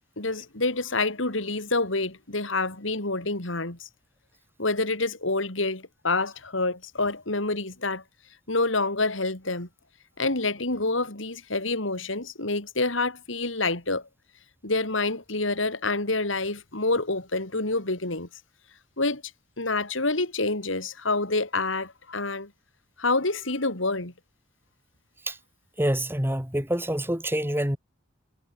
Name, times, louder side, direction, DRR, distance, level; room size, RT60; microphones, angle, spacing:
voice 1, 0.2-3.9 4.6-8.0 8.5-9.7 10.2-14.1 14.6-18.3 19.0-19.2 19.6-22.5 23.0-24.1, left 3 dB, 85° left, 4.0 m, -27 dB
voice 2, 25.8-27.8, right 1 dB, 10° right, 3.0 m, -26 dB
head